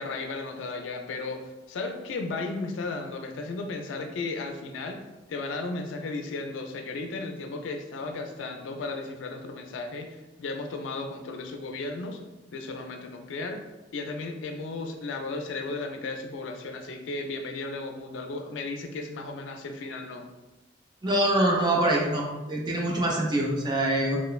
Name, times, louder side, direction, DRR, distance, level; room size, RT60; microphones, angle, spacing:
voice 1, 0.0-1.4 1.7-5.0 5.3-12.2 12.5-13.6 13.9-20.3, left 3 dB, 85° left, 5 dB, 0.4 m, -35 dB
voice 2, 21.0-24.2, right 1 dB, 25° right, -2 dB, 0.4 m, -24 dB
3.0 x 2.0 x 2.3 m, 1.1 s
head